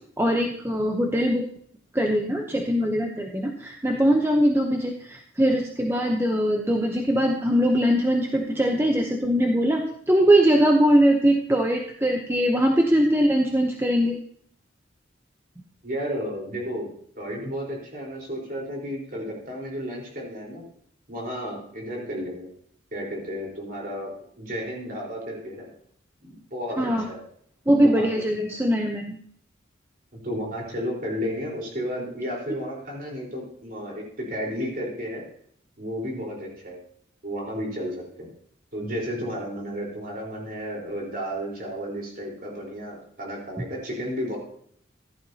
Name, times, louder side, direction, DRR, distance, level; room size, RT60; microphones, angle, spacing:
voice 1, 0.2-1.4 1.9-14.2 26.8-27.1 27.7-29.2, equal, 10° right, 2 dB, 0.8 m, -21 dB
voice 2, 15.8-16.9 17.1-20.6 21.1-22.5 22.9-25.7 26.2-27.2 27.8-28.3 30.1-35.2 35.8-36.8 37.2-38.3 38.7-44.4, equal, 45° right, -2 dB, 4.2 m, -32 dB
15.0 x 11.5 x 2.8 m, 0.63 s
head